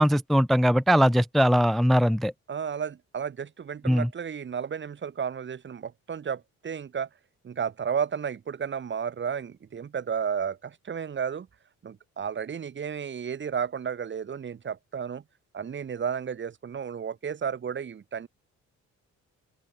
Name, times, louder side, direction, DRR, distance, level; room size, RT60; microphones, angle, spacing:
voice 1, 0.0-2.3 3.9-4.1, equal, ahead, 0.4 m, -21 dB
voice 2, 2.5-7.1 7.4-11.5 11.8-15.2 15.5-18.3, right 7 dB, 40° right, 1.2 m, -32 dB
open air
cardioid pair, 90°, 30 cm